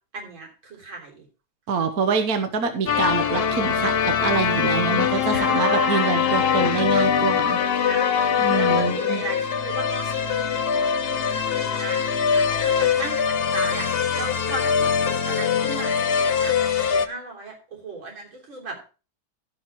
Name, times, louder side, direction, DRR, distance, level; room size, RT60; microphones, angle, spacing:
voice 1, 0.1-1.2 5.3-6.4 7.8-13.2 13.5-16.5 16.8-17.5 17.8-18.9, right 3 dB, 75° right, 0 dB, 4.2 m, -35 dB
voice 2, 1.7-7.6 8.4-9.2, right 5 dB, 55° right, 7 dB, 1.5 m, -25 dB
sound 1, 2.9-17.1, left 7 dB, 90° left, 0.5 m, -22 dB
15.5 x 5.8 x 4.5 m, 0.35 s
omnidirectional pair, 2.2 m